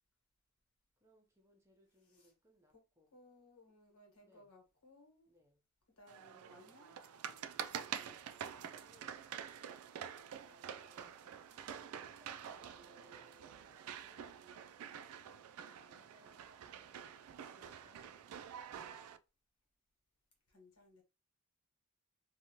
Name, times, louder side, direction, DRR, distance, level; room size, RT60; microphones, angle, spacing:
voice 1, 1.0-3.1 4.2-4.5 5.3-5.6 7.7-9.2 10.3-14.4 15.6-17.1 17.5-18.1, equal, 10° right, 0.6 m, -68 dB
voice 2, 3.1-5.3 6.0-6.9 20.5-21.0, left 2 dB, 75° left, 1.2 m, -63 dB
sound 1, 6.1-19.2, right 8 dB, 80° right, 0.3 m, -48 dB
2.8 x 2.3 x 2.8 m
head